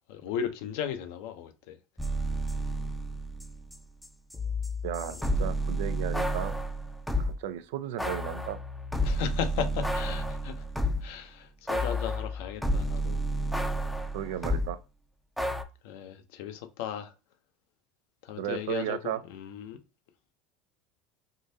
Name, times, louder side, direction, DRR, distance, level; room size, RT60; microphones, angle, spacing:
voice 1, 0.1-1.8 5.1-5.3 9.0-10.6 11.0-13.2 15.8-17.1 18.2-19.8, left 8 dB, 75° left, 0.6 m, -36 dB
sound 1, 2.0-3.8 4.0-7.3 8.0-11.2 11.7-14.7 15.4-15.6, equal, ahead, 0.5 m, -31 dB
voice 2, 4.8-6.5 7.2-8.6 14.1-14.8 18.4-19.2, right 12 dB, 80° right, 0.3 m, -34 dB
3.7 x 2.6 x 2.7 m
supercardioid pair, 95°, 0 cm